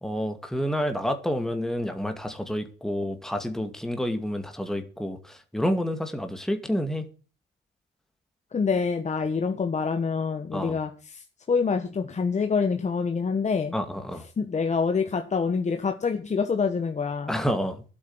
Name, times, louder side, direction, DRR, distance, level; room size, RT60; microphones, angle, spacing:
voice 1, 0.0-7.1 10.5-10.8 13.7-14.2 17.3-17.8, equal, ahead, 2.2 m, -29 dB
voice 2, 8.5-13.7 14.4-17.3, left 5 dB, 35° left, 1.4 m, -26 dB
12.5 x 8.6 x 7.9 m
cardioid pair, 90°, 20 cm